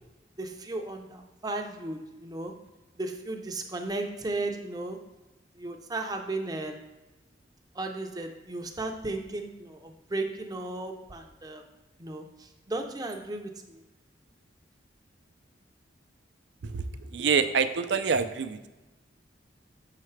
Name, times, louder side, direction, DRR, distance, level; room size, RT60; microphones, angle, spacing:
voice 1, 0.4-2.6 3.0-5.0 5.6-6.8 7.7-11.6 12.0-13.8, right 2 dB, 20° right, 5 dB, 0.6 m, -35 dB
voice 2, 16.6-18.7, right 6 dB, 65° right, 10 dB, 0.5 m, -27 dB
7.3 x 5.7 x 3.2 m, 1.1 s
head